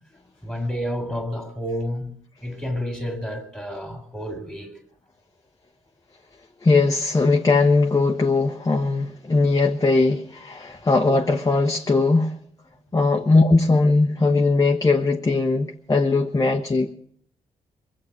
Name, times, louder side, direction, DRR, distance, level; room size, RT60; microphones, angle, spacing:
voice 1, 0.4-2.1 2.4-4.8 13.2-13.3 13.6-13.7, equal, ahead, 2.8 m, -30 dB
voice 2, 6.6-12.3 12.9-16.9, left 3 dB, 25° left, 1.1 m, -19 dB
21.0 x 7.6 x 8.9 m
cardioid pair, 80°, 15 cm